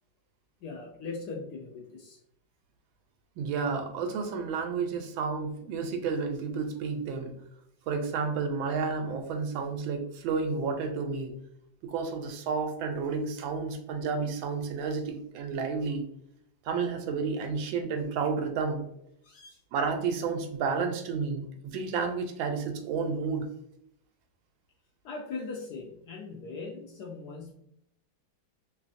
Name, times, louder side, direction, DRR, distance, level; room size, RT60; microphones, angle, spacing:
voice 1, 0.6-2.2 19.2-19.6 25.0-27.5, left 4 dB, 70° left, 0 dB, 1.0 m, -40 dB
voice 2, 3.4-7.3 7.9-11.4 11.8-16.0 16.6-18.8 19.7-23.5, right 5 dB, 85° right, 4 dB, 1.4 m, -31 dB
3.4 x 3.1 x 2.5 m, 0.76 s
omnidirectional pair, 2.1 m